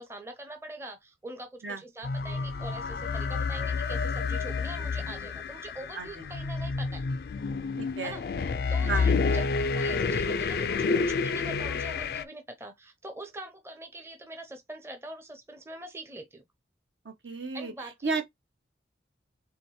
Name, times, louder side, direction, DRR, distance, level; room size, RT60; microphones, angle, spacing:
voice 1, 0.0-7.1 8.0-8.2 8.7-16.4 17.5-18.2, right 1 dB, 15° right, 0.6 m, -43 dB
sound 1, 2.0-12.2, left 4 dB, 55° left, 0.3 m, -29 dB
voice 2, 7.8-8.2 8.8-9.1 17.0-17.7 18.0-18.2, right 4 dB, 75° right, 1.1 m, -32 dB
4.3 x 3.4 x 3.1 m
head